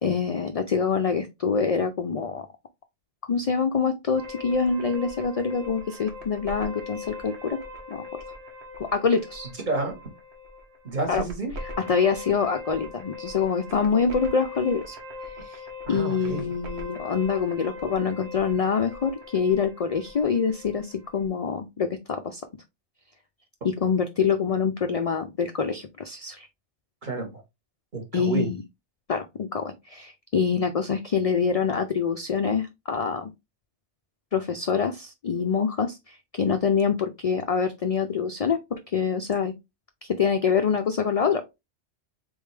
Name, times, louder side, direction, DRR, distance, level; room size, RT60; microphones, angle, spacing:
voice 1, 0.0-2.5 3.3-7.6 7.9-8.0 8.8-9.5 11.1-11.2 11.9-15.0 15.4-15.6 15.9-22.4 23.6-26.5 28.1-28.6 29.1-33.3 34.3-39.5 40.0-41.4, left 6 dB, 70° left, 7 dB, 0.3 m, -25 dB
sound 1, 4.2-21.3, left 3 dB, 70° right, 1.3 m, -41 dB
voice 2, 10.8-11.5 15.9-16.5 27.0-27.4 27.9-28.5, right 3 dB, 40° right, 2 dB, 1.4 m, -30 dB
3.8 x 3.6 x 3.2 m, 0.22 s
omnidirectional pair, 1.2 m